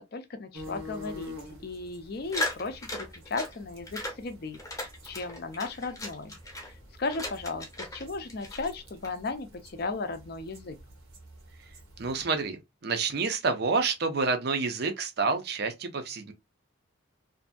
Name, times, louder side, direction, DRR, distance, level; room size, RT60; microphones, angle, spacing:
voice 1, 0.1-6.4 7.0-10.8, left 3 dB, 45° left, 0.4 m, -36 dB
sound 1, 0.5-12.3, left 2 dB, 80° right, 1.0 m, -48 dB
sound 2, 2.3-3.5 3.8-4.2 4.5-6.7 7.1-8.0 8.3-9.1, left 1 dB, 15° left, 0.8 m, -36 dB
voice 2, 12.0-16.3, right 4 dB, 50° right, 0.5 m, -28 dB
2.6 x 2.5 x 2.2 m
head